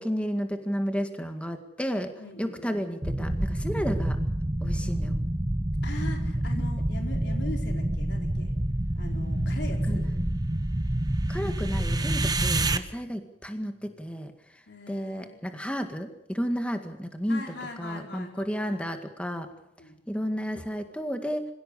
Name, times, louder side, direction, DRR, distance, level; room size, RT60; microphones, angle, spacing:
voice 1, 0.0-2.1 2.4-4.2 4.6-5.2 6.5-6.6 9.9-10.1 11.3-17.4 17.8-19.5 20.1-21.5, equal, 5° left, 6 dB, 1.9 m, -32 dB
voice 2, 2.2-2.8 5.8-8.5 8.9-10.0 14.7-15.4 17.3-18.8 19.8-20.0, left 1 dB, 60° left, 2 dB, 4.6 m, -41 dB
sound 1, 3.0-12.8, right 1 dB, 20° right, 1.0 m, -27 dB
26.0 x 16.5 x 8.5 m, 0.82 s
head